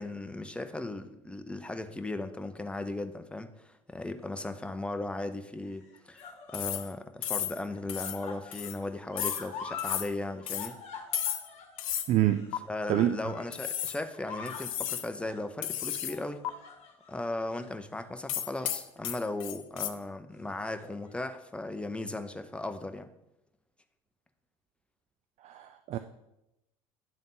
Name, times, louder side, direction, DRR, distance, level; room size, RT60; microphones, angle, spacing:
voice 1, 0.0-10.8 12.7-16.4 17.1-23.1, left 2 dB, 5° left, 8 dB, 0.6 m, -37 dB
sound 1, 4.2-4.8 5.7-7.0 7.3-10.1 10.3-13.8 14.1-14.7 15.2-15.5 16.1-17.1 17.5-17.7 18.3-18.9 19.2-19.4 20.5-21.2 22.0-22.1, left 5 dB, 40° left, 1.3 m, -45 dB
sound 2, 6.5-6.9 7.2-7.6 7.9-8.2 8.5-8.8 9.2-9.5 9.8-10.1 10.5-10.7 11.1-11.5 11.8-12.1 12.5-12.6 13.5-14.0 14.5-15.1 15.6-16.2 16.4-16.5 18.3-19.9, left 10 dB, 75° left, 0.5 m, -33 dB
voice 2, 12.1-12.5 12.9-13.1 25.4-26.0, right 13 dB, 40° right, 10 dB, 0.4 m, -26 dB
10.5 x 3.5 x 3.9 m, 0.88 s
hypercardioid pair, 70°, 17 cm